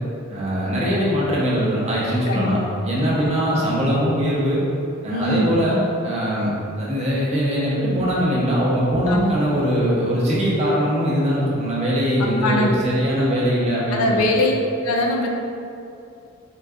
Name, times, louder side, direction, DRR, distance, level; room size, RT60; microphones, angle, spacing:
voice 1, 0.3-2.6 2.9-4.6 5.0-14.3, equal, 30° right, -6 dB, 0.7 m, -21 dB
voice 2, 2.3-3.7 5.1-5.6 9.1-9.3 12.2-12.7 13.9-14.5 14.8-15.3, left 2 dB, 90° left, 1 dB, 0.4 m, -23 dB
3.7 x 2.6 x 2.3 m, 2.6 s
head